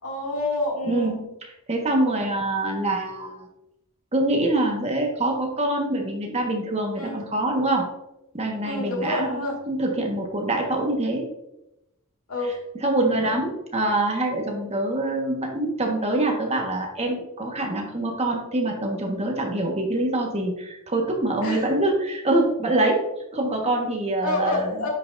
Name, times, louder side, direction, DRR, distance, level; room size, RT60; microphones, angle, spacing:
voice 1, 0.0-1.1 2.0-2.2 6.9-7.1 8.6-9.6 12.3-12.6 13.1-13.3 21.4-21.7 24.2-24.9, left 2 dB, 70° left, -1 dB, 2.3 m, -28 dB
voice 2, 0.8-3.5 4.1-7.8 8.3-11.3 12.8-23.0 23.3-24.9, right 2 dB, 30° right, 1 dB, 1.4 m, -25 dB
9.5 x 5.8 x 2.6 m, 0.88 s
head